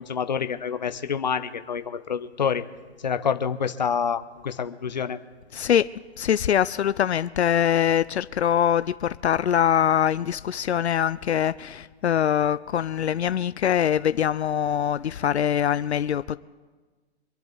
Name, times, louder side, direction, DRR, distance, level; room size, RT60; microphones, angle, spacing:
voice 1, 0.0-2.6 3.0-5.2, left 7 dB, 40° left, 10 dB, 0.8 m, -27 dB
voice 2, 5.5-5.9 6.2-16.4, left 9 dB, 75° left, 15 dB, 0.6 m, -23 dB
26.0 x 11.0 x 3.9 m, 1.4 s
hypercardioid pair, 180°, 33 cm